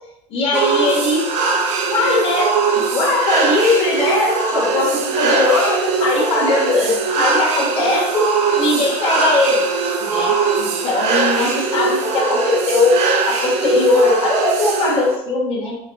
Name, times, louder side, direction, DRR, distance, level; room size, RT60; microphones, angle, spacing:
voice 1, 0.3-1.4 1.9-9.6 10.0-13.0 13.3-15.8, left 2 dB, 40° left, -3 dB, 1.4 m, -19 dB
sound 1, 0.5-15.2, right 4 dB, 55° right, 0.7 m, -20 dB
5.5 x 2.3 x 3.6 m, 0.88 s
cardioid pair, 150°, 13 cm